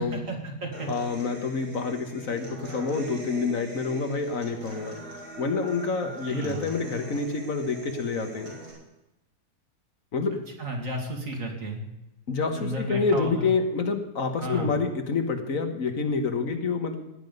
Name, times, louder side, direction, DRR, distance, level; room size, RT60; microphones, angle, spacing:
voice 1, 0.0-0.9 6.3-6.6 10.6-11.8 12.5-13.5 14.4-14.7, right 1 dB, 55° right, 1 dB, 2.6 m, -32 dB
Human voice / Acoustic guitar, 0.7-8.7, right 2 dB, 80° right, 5.2 m, -42 dB
voice 2, 0.9-5.0 5.4-8.5 10.1-10.4 12.3-17.0, left 4 dB, 60° left, 6 dB, 1.6 m, -27 dB
16.5 x 10.0 x 5.4 m, 0.94 s
omnidirectional pair, 1.7 m